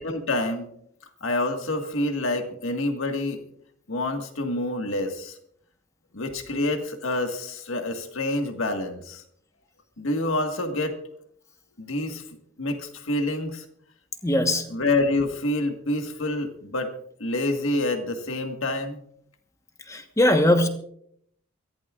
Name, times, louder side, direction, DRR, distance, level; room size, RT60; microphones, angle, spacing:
voice 1, 0.0-0.7 1.2-3.4 3.9-5.4 6.1-9.2 10.0-11.0 11.8-12.2 12.6-13.6 14.7-16.9 17.2-19.0, left 2 dB, 70° left, 5 dB, 1.6 m, -27 dB
voice 2, 14.2-14.7 19.9-20.7, left 1 dB, 15° left, 6 dB, 1.2 m, -20 dB
23.5 x 15.0 x 2.4 m, 0.69 s
head